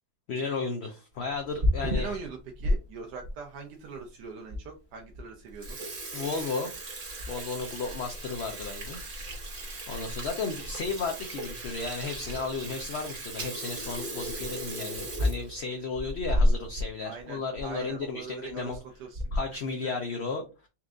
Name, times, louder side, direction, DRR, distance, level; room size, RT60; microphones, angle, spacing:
voice 1, 0.3-2.2 6.1-6.7 7.3-9.0 9.9-18.8 19.3-20.7, left 4 dB, 60° left, 0.7 m, -34 dB
Water tap faucet / Sink (filling or washing), 1.3-2.8 3.2-3.3 4.0-4.1 4.5-4.6 5.0-5.2 5.5-16.9 17.2-17.3 17.6-17.7 18.5-18.8 19.1-19.6, equal, 35° right, 1.1 m, -32 dB
voice 2, 1.8-5.8 17.0-19.6 19.8-20.2, right 5 dB, 90° right, 1.3 m, -42 dB
4.4 x 2.5 x 3.6 m
omnidirectional pair, 1.7 m